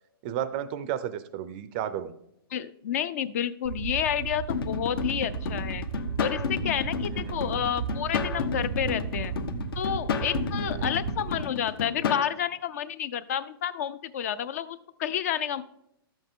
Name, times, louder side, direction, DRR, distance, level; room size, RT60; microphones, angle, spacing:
voice 1, 0.2-2.1 7.1-7.5 10.6-10.9, right 10 dB, 25° right, 13 dB, 0.4 m, -33 dB
voice 2, 2.5-5.8 6.2-9.4 9.8-15.6, left 9 dB, 40° left, 16 dB, 0.4 m, -30 dB
sound 1, 3.6-11.4, right 9 dB, 75° right, 0.6 m, -35 dB
sound 2, 4.5-12.3, left 6 dB, 70° left, 0.9 m, -32 dB
12.0 x 7.9 x 3.7 m, 0.82 s
hypercardioid pair, 170°, 13 cm